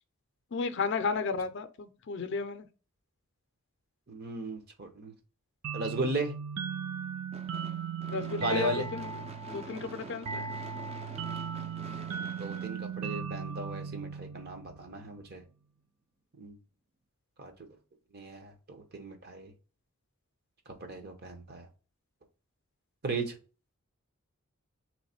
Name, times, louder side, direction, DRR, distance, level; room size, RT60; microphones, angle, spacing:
voice 1, 0.5-2.7 8.1-9.1 9.5-10.5, left 4 dB, 50° left, 0.5 m, -33 dB
voice 2, 4.1-5.1 5.7-6.3 8.4-8.9 12.4-15.4 16.4-16.6 17.4-17.5 18.1-19.5 20.8-21.7 23.0-23.4, right 2 dB, 45° right, 0.8 m, -36 dB
sound 1, 5.6-15.0, right 6 dB, 90° right, 0.5 m, -38 dB
Gunshot gunfire / Fireworks, 7.3-13.6, right 2 dB, 30° right, 0.4 m, -47 dB
3.4 x 3.1 x 4.1 m
head